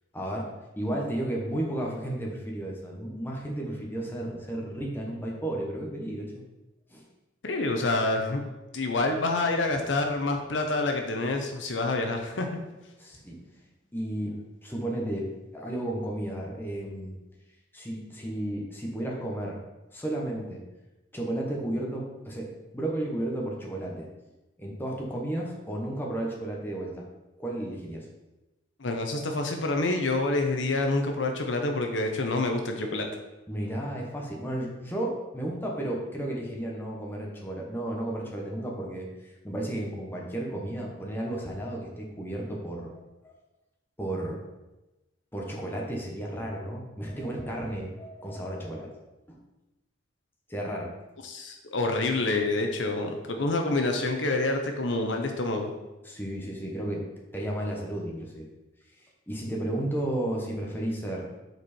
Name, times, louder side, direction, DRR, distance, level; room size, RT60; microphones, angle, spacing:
voice 1, 0.1-0.5 0.8-6.4 6.9-7.0 13.0-13.4 13.9-17.2 17.7-19.6 19.9-20.6 21.1-24.1 24.6-27.1 27.4-28.1 33.5-43.3 44.0-44.4 45.3-49.0 49.3-49.4 50.5-50.9 56.0-57.1 57.3-58.5 59.3-61.3, right 1 dB, 10° left, -2 dB, 1.3 m, -33 dB
voice 2, 7.4-8.4 8.7-12.6 28.8-33.1 51.2-55.7, left 2 dB, 70° left, 4 dB, 0.8 m, -27 dB
8.0 x 4.7 x 4.3 m, 1.0 s
head